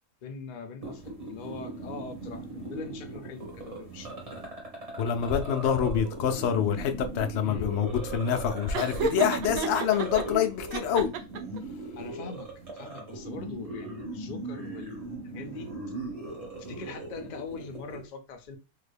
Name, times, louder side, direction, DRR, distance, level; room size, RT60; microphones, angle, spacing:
voice 1, 0.2-4.1 7.4-7.7 12.0-12.5 12.7-15.7 16.6-18.6, left 5 dB, 85° left, 0.4 m, -42 dB
sound 1, 0.8-18.0, right 2 dB, 30° right, 1.1 m, -39 dB
voice 2, 5.0-11.1, left 8 dB, 65° left, 0.8 m, -26 dB
Laughter, 8.7-10.2 10.7-11.6, right 5 dB, 90° right, 1.0 m, -31 dB
3.5 x 2.1 x 3.3 m
omnidirectional pair, 1.5 m